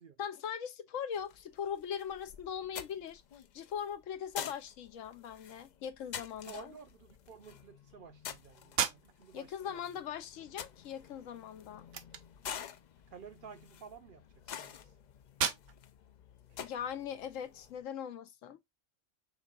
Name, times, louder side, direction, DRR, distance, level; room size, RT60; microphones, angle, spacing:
voice 1, 0.2-3.2 3.5-6.7 9.3-11.9 16.6-18.6, left 8 dB, 90° left, 1.1 m, -40 dB
sound 1, 1.1-17.8, left 8 dB, 65° left, 0.4 m, -49 dB
voice 2, 6.4-9.9 13.1-14.9, right 6 dB, 55° right, 0.7 m, -52 dB
sound 2, 8.7-17.6, right 8 dB, 75° right, 1.0 m, -41 dB
5.9 x 3.6 x 2.3 m
omnidirectional pair, 1.3 m